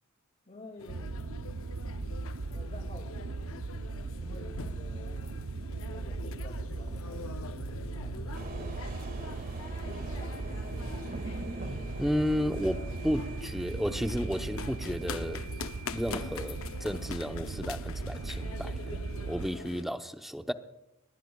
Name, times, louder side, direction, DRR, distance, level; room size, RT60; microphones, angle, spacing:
voice 1, 0.5-1.3 2.5-5.4 5.9-9.0 9.9-10.9, left 2 dB, 35° left, 2.3 m, -51 dB
sound 1, 0.8-19.8, left 5 dB, 70° left, 0.7 m, -44 dB
sound 2, 0.9-19.5, right 3 dB, 90° right, 0.6 m, -38 dB
sound 3, 8.3-13.4, right 1 dB, 45° right, 2.0 m, -44 dB
voice 2, 12.0-15.5 15.9-19.0 19.3-20.5, equal, ahead, 0.8 m, -32 dB
22.0 x 19.5 x 2.3 m
head